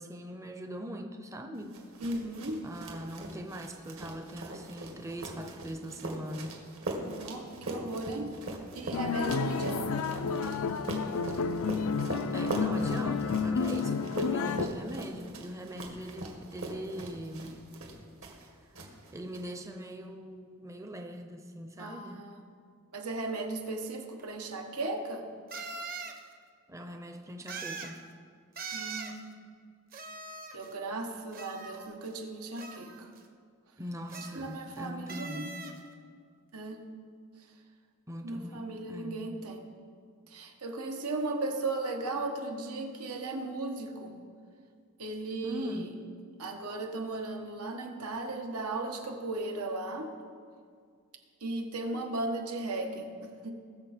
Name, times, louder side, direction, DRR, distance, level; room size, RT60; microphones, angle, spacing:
voice 1, 0.0-1.8 2.6-6.6 9.6-9.7 12.3-17.6 19.1-22.2 26.7-28.0 33.8-35.6 38.1-39.2 45.4-45.9, equal, 15° right, 4 dB, 0.6 m, -41 dB
sound 1, 1.7-18.5 18.7-19.4, right 2 dB, 65° right, 1.8 m, -40 dB
voice 2, 2.0-2.6 7.1-8.4 8.7-9.9 21.8-22.5 22.9-25.3 28.7-29.3 30.5-33.1 34.3-35.6 36.5-36.8 38.2-39.6 40.3-44.1 45.0-45.9 46.4-50.1 51.4-53.5, right 2 dB, 90° right, 3 dB, 1.4 m, -36 dB
sound 2, 8.9-14.7, left 5 dB, 70° left, 0.4 m, -30 dB
sound 3, 24.2-24.3 25.5-26.2 27.5-28.0 28.6-29.2 29.9-30.7 31.3-32.1 32.6-33.2 34.1-34.8 35.1-35.8, right 4 dB, 40° right, 0.9 m, -42 dB
19.5 x 6.7 x 4.4 m, 2.2 s
head